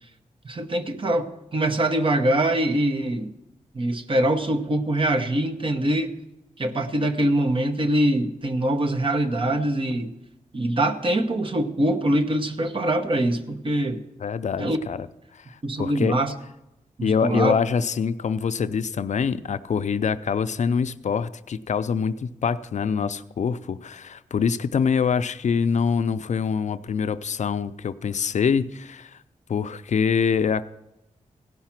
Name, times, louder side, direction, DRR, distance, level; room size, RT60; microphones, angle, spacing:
voice 1, 0.4-3.3 3.7-6.1 6.6-10.1 10.5-14.0 14.6-14.8 15.6-16.3 17.0-17.6, right 1 dB, 40° right, 6 dB, 1.0 m, -23 dB
voice 2, 14.2-15.1 15.3-16.2 17.0-29.2 29.5-30.7, left 6 dB, 60° left, 13 dB, 0.4 m, -25 dB
16.5 x 5.6 x 5.9 m, 0.91 s
wide cardioid pair, 85°, 13 cm